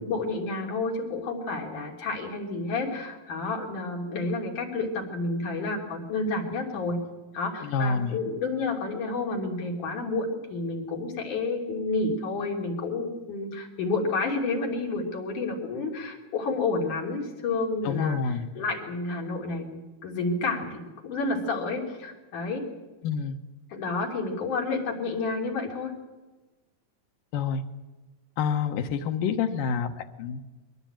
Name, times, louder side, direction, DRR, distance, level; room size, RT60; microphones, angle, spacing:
voice 1, 0.0-7.0 7.3-18.2 18.6-19.7 20.0-22.7 23.7-25.9, left 3 dB, 65° left, 0 dB, 4.7 m, -30 dB
voice 2, 7.6-8.2 17.8-18.5 23.0-23.4 27.3-27.6 28.4-30.4, left 6 dB, 85° left, 6 dB, 2.8 m, -28 dB
22.5 x 18.0 x 8.9 m, 1.2 s
omnidirectional pair, 3.9 m